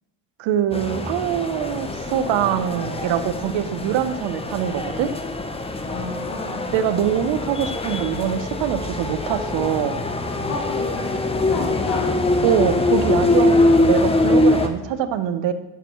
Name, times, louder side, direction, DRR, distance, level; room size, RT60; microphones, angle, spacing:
voice 1, 0.4-5.1 6.7-10.0 12.4-15.5, right 9 dB, 75° right, 11 dB, 0.8 m, -23 dB
sound 1, 0.7-14.7, left 2 dB, 15° left, 0.7 m, -23 dB
voice 2, 5.9-6.8 10.4-12.1, left 3 dB, 90° left, -4 dB, 3.1 m, -32 dB
11.0 x 7.0 x 3.0 m, 1.1 s
cardioid pair, 90°, 44 cm